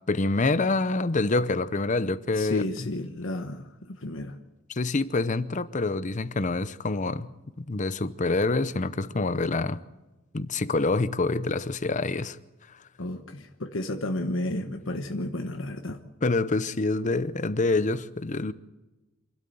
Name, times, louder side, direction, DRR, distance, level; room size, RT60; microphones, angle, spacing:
voice 1, 0.1-2.9 4.7-7.3 7.6-9.8 10.3-12.4 16.2-18.5, left 3 dB, 35° left, 0.7 m, -26 dB
voice 2, 2.4-4.4 13.0-16.0, left 1 dB, 70° left, 1.2 m, -32 dB
27.0 x 12.5 x 7.9 m
head